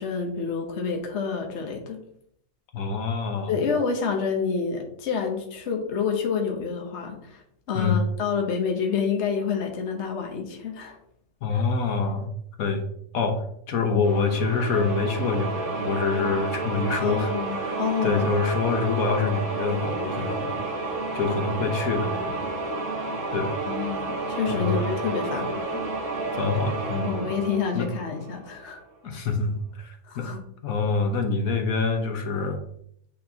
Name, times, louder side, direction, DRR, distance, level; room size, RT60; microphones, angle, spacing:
voice 1, 0.0-2.0 3.5-11.0 11.5-11.6 17.0-18.3 23.2-23.4 23.7-25.8 27.0-28.8 30.0-30.4, left 6 dB, 55° left, 2 dB, 1.2 m, -28 dB
voice 2, 2.7-3.5 7.7-8.0 11.4-12.3 12.6-12.8 13.1-13.4 13.7-20.5 21.1-22.4 23.3-23.5 24.5-24.9 26.4-27.3 27.7-27.9 29.0-30.3 30.6-32.6, left 4 dB, 80° left, 4 dB, 1.4 m, -26 dB
sound 1, 14.0-28.6, right 3 dB, 40° right, 2.0 m, -31 dB
8.6 x 4.1 x 2.8 m, 0.70 s
omnidirectional pair, 1.4 m